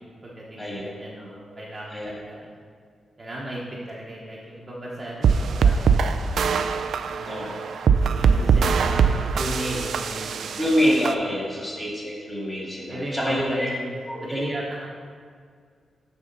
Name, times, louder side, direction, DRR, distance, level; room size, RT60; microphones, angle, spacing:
voice 1, 0.2-2.6 3.2-6.5 7.1-10.6 11.5-11.7 12.9-14.9, right 1 dB, 20° right, -5 dB, 1.0 m, -35 dB
sound 1, 5.2-11.1, right 6 dB, 65° right, 0.4 m, -22 dB
voice 2, 7.3-7.6 8.1-8.5 10.5-13.7 14.1-14.4, equal, 15° left, -4 dB, 2.1 m, -26 dB
7.0 x 6.8 x 5.3 m, 2.1 s
wide cardioid pair, 180°, 0 cm